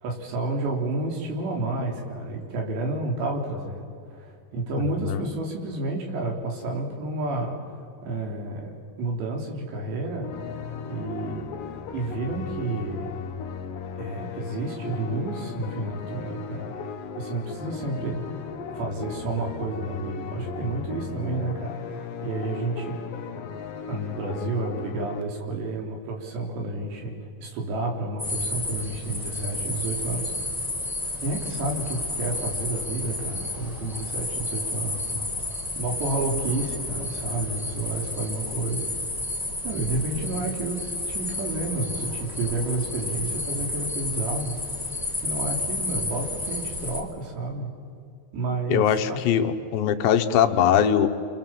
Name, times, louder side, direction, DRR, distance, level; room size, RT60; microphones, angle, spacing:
voice 1, 0.0-3.8 4.1-7.6 8.0-10.3 10.9-11.5 11.9-13.1 14.0-16.7 17.2-18.2 18.7-23.0 23.9-27.1 27.4-30.3 31.2-35.2 35.7-38.9 39.6-44.6 45.1-47.7 48.3-49.3, right 2 dB, 70° right, 1 dB, 5.7 m, -30 dB
voice 2, 4.8-5.2 48.7-51.1, left 9 dB, 80° left, 8 dB, 3.3 m, -21 dB
sound 1, 10.2-25.2, left 6 dB, 60° left, 2.7 m, -36 dB
sound 2, 28.2-47.0, left 2 dB, ahead, 4.1 m, -31 dB
28.5 x 27.0 x 7.5 m, 2.3 s
omnidirectional pair, 5.1 m